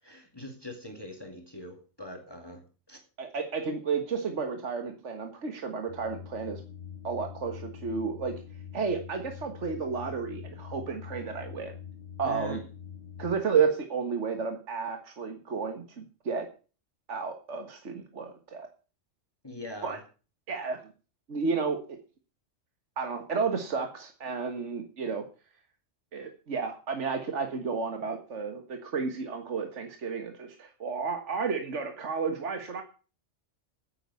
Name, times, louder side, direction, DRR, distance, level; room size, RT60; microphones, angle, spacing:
voice 1, 0.0-3.0 12.2-12.6 19.4-20.0, left 1 dB, 20° left, 3 dB, 2.4 m, -42 dB
voice 2, 3.2-6.6 7.0-8.4 8.7-11.7 12.2-12.6 13.2-16.5 17.1-18.7 19.8-20.0 20.5-20.8 21.3-22.0 23.0-25.3 26.1-32.8, right 5 dB, 70° right, 5 dB, 1.8 m, -32 dB
sound 1, 5.9-13.4, left 8 dB, 35° left, 1.8 m, -44 dB
10.0 x 8.7 x 8.3 m, 0.36 s
omnidirectional pair, 1.3 m